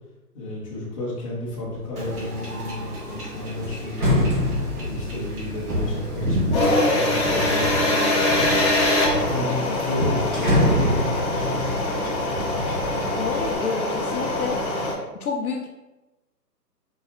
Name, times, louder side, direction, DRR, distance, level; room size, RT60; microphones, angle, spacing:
voice 1, 0.3-4.2 4.8-8.5 9.2-11.1, left 1 dB, 20° left, -6 dB, 0.8 m, -31 dB
sound 1, 1.6-1.9 2.3-7.6 8.3-8.9 9.3-9.4 9.7-13.6 14.0-14.6, left 1 dB, 30° right, 0.8 m, -26 dB
Wind / Ocean / Boat Water vehicle, 2.0-13.6, equal, 65° right, 1.3 m, -32 dB
sound 2, 6.5-14.9, left 2 dB, 40° left, 1.4 m, -23 dB
voice 2, 13.2-14.6 15.2-15.7, left 5 dB, 65° left, 2 dB, 0.6 m, -28 dB
4.2 x 3.8 x 2.5 m, 1.0 s
hypercardioid pair, 155°, 49 cm